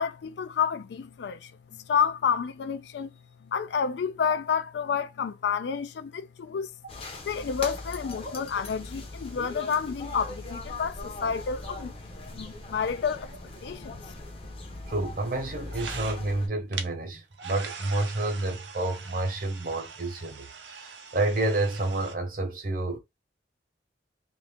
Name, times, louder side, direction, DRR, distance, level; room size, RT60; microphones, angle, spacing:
voice 1, 0.0-3.1 3.5-6.7 7.3-11.9 12.3-13.3 13.6-14.0, left 7 dB, 70° left, 0.3 m, -29 dB
sound 1, 6.9-16.5, left 2 dB, 30° left, 0.7 m, -40 dB
voice 2, 14.9-23.0, right 2 dB, 50° right, 0.9 m, -29 dB
camera ST, 15.7-16.4 16.7-16.9 17.3-22.1, right 6 dB, 80° right, 0.6 m, -42 dB
2.6 x 2.6 x 3.4 m
head